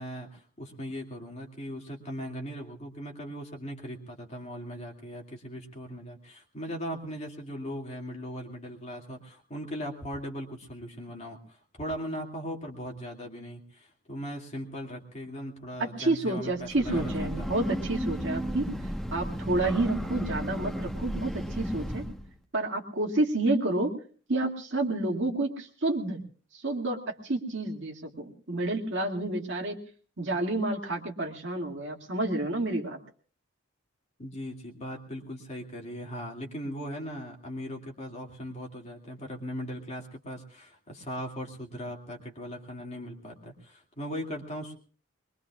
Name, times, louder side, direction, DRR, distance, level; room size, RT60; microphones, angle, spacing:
voice 1, 0.0-17.6 34.2-44.8, equal, 30° left, 0 dB, 2.3 m, -39 dB
voice 2, 15.8-22.0 22.5-23.9 24.3-26.2 26.5-29.8 30.2-33.0, right 2 dB, 60° right, 1 dB, 2.2 m, -29 dB
Breathing / Train, 16.5-22.3, equal, ahead, 1.2 m, -34 dB
22.5 x 22.5 x 2.4 m, 0.42 s
head